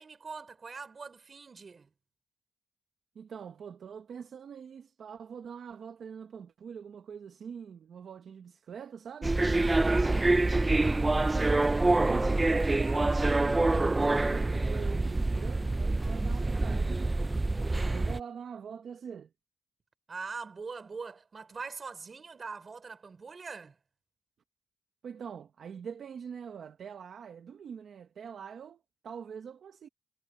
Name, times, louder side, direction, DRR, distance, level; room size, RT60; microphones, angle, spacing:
voice 1, 0.0-1.9 9.6-10.2 20.1-23.8, right 4 dB, 30° right, 4.8 m, -42 dB
voice 2, 3.1-9.3 11.1-17.1 17.8-19.3 25.0-29.9, right 7 dB, 50° right, 1.1 m, -44 dB
sound 1, 9.2-18.2, right 2 dB, 15° right, 0.4 m, -26 dB
cardioid pair, 140°, 0 cm